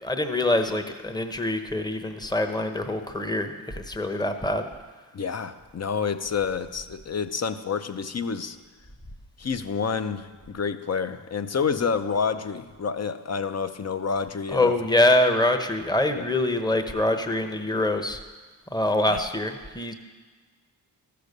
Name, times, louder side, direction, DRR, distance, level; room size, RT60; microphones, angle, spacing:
voice 1, 0.0-4.7 14.5-18.2 18.7-19.9, left 1 dB, 10° left, 7 dB, 0.9 m, -24 dB
voice 2, 5.1-8.6 9.4-14.7 16.1-16.2 19.1-19.2, left 6 dB, 35° left, 10 dB, 0.7 m, -28 dB
13.5 x 6.8 x 6.6 m, 1.4 s
cardioid pair, 75°, 44 cm